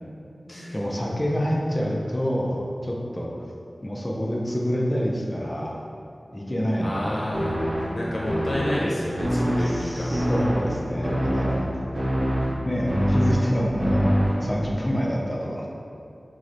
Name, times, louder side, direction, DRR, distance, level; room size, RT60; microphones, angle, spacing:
voice 1, 0.7-3.3 3.8-5.8 6.3-7.4 9.6-11.8 12.6-14.1 14.4-15.7, equal, 20° left, -2 dB, 0.4 m, -27 dB
voice 2, 6.8-7.5 7.9-10.4, left 1 dB, 70° left, -6 dB, 0.7 m, -30 dB
sound 1, 7.3-14.7, equal, 45° right, 0.8 m, -25 dB
4.4 x 2.0 x 2.5 m, 2.5 s
wide cardioid pair, 70°, 0 cm